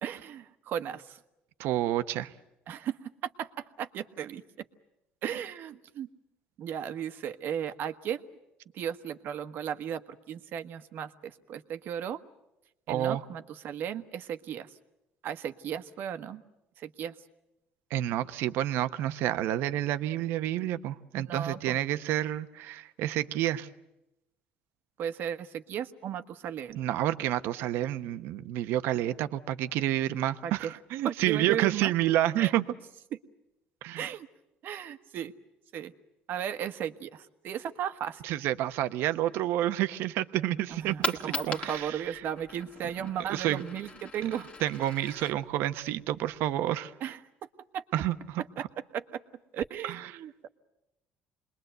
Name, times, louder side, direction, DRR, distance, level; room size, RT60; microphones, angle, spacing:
voice 1, 0.0-1.2 2.7-3.5 3.8-4.4 5.2-6.1 6.6-8.3 8.7-12.2 12.9-14.7 15.2-16.4 16.8-17.1 21.1-21.8 25.0-26.8 30.4-30.7 31.0-31.9 32.4-32.5 34.0-34.3 34.6-35.3 35.7-35.9 36.3-38.2 40.7-44.5 47.0-47.2 47.7-47.8 48.6-48.7 48.9-49.2 49.5-50.5, right 9 dB, 60° right, 9 dB, 1.3 m, -35 dB
voice 2, 1.6-2.3 12.9-13.2 17.9-23.7 26.8-32.6 33.8-34.0 38.2-42.2 43.3-43.6 44.6-46.9 47.9-48.7 49.9-50.0, right 13 dB, 75° right, 11 dB, 1.0 m, -29 dB
Coin (dropping), 40.7-46.7, left 3 dB, 30° left, 1.7 m, -40 dB
28.0 x 21.5 x 8.0 m, 0.91 s
cardioid pair, 110°, 4 cm